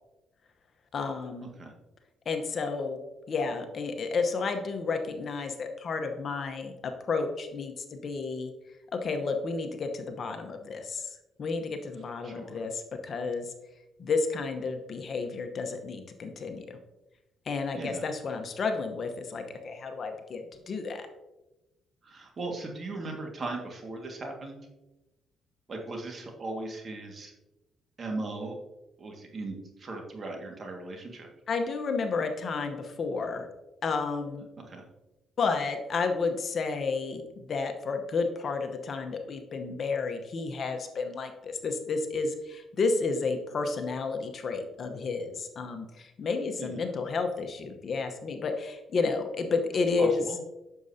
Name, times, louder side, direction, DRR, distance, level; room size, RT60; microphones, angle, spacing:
voice 1, 0.9-1.5 2.2-3.0 3.3-6.7 7.1-8.5 8.9-11.1 11.4-13.5 14.0-16.8 17.5-21.1 31.5-33.5 33.8-34.5 35.4-50.2, left 4 dB, 50° left, 6 dB, 0.9 m, -31 dB
voice 2, 12.2-12.6 17.7-18.0 22.0-24.6 25.7-27.3 28.0-28.6 29.0-31.3 34.7-34.8 46.6-46.7 50.0-50.4, right 2 dB, 45° right, 2 dB, 1.8 m, -38 dB
8.5 x 6.7 x 2.8 m, 1.0 s
cardioid pair, 90°, 0 cm